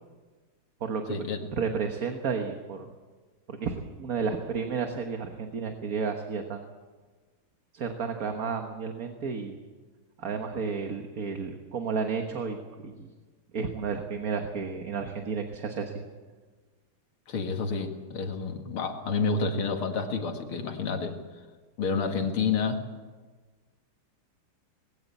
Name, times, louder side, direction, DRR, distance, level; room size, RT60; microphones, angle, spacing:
voice 1, 0.8-2.9 3.5-6.6 7.7-9.6 10.2-12.6 12.8-13.1 13.5-15.9, right 5 dB, 45° right, 4 dB, 1.6 m, -32 dB
voice 2, 17.3-21.2 21.8-22.8, left 4 dB, 85° left, 4 dB, 2.8 m, -29 dB
20.5 x 17.0 x 8.3 m, 1.4 s
omnidirectional pair, 2.3 m